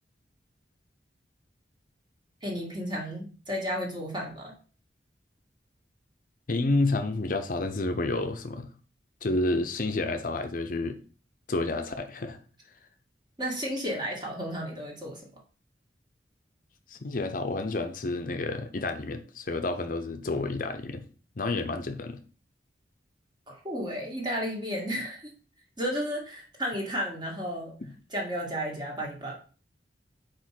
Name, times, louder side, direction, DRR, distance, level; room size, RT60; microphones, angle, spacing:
voice 1, 2.4-4.5 13.4-15.3 23.5-25.3 25.8-27.8 28.1-29.3, equal, 25° right, 2.0 m, -33 dB
voice 2, 6.5-8.7 9.2-11.0 11.5-12.4 16.9-21.0 21.4-22.2 27.8-27.9, left 2 dB, 50° left, 0.7 m, -30 dB
5.1 x 4.4 x 5.9 m
head